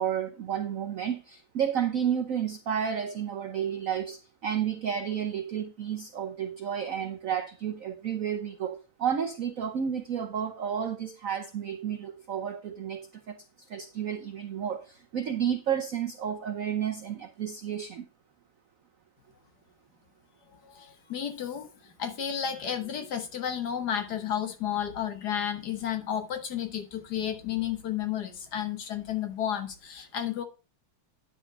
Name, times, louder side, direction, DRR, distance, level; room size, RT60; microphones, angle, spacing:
voice 1, 0.0-18.0, right 8 dB, 90° right, 0.7 m, -31 dB
voice 2, 20.6-30.4, left 9 dB, 55° left, 1.5 m, -32 dB
9.8 x 5.1 x 5.1 m
omnidirectional pair, 2.3 m